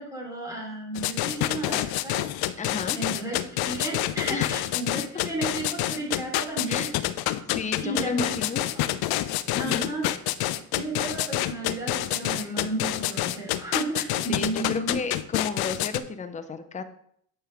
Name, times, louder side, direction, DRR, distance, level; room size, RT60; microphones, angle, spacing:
voice 1, 0.0-2.2 3.0-6.8 7.8-8.3 8.7-9.2 9.6-10.0 10.7-15.0, right 1 dB, 5° right, -3 dB, 3.5 m, -33 dB
sound 1, 0.9-16.0, left 15 dB, 55° left, 0.6 m, -27 dB
voice 2, 2.6-3.0 4.3-4.6 6.7-6.9 7.5-8.6 9.5-9.9 14.3-16.8, left 5 dB, 15° left, 9 dB, 0.7 m, -33 dB
8.2 x 5.6 x 3.5 m, 0.67 s
supercardioid pair, 95°, 46 cm